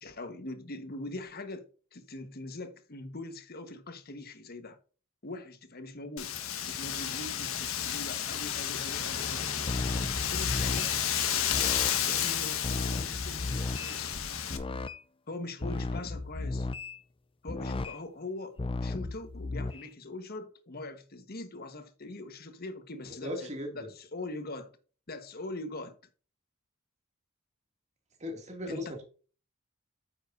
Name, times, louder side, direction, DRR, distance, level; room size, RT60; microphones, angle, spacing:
voice 1, 0.0-4.8 5.2-6.3 6.7-9.6 10.0-10.9 12.1-14.2 15.3-16.7 17.4-24.7 25.1-26.0 28.7-28.9, left 2 dB, 50° left, 1.3 m, -42 dB
Wind, 6.2-14.6, left 9 dB, 85° left, 1.4 m, -32 dB
sound 1, 9.2-15.0 15.6-17.0 17.5-18.0 18.6-19.9, left 2 dB, 25° left, 0.5 m, -35 dB
voice 2, 23.2-23.9 28.2-29.0, left 1 dB, 35° right, 2.4 m, -37 dB
9.4 x 7.3 x 2.7 m
head